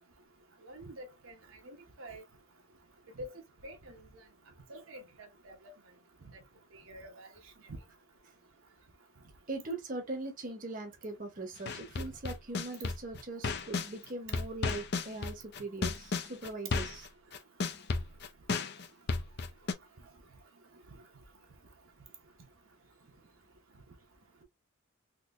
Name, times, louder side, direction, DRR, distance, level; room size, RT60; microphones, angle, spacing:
voice 1, 0.6-1.3 1.6-2.2 3.2-3.3 3.6-4.0 4.7-5.6 6.7-7.3 7.7-7.8, right 1 dB, 70° right, 0.9 m, -47 dB
voice 2, 9.5-17.1, right 2 dB, 40° right, 0.9 m, -41 dB
sound 1, 11.7-13.9 14.3-19.7, left 4 dB, 50° left, 0.6 m, -33 dB
3.8 x 2.8 x 2.5 m
head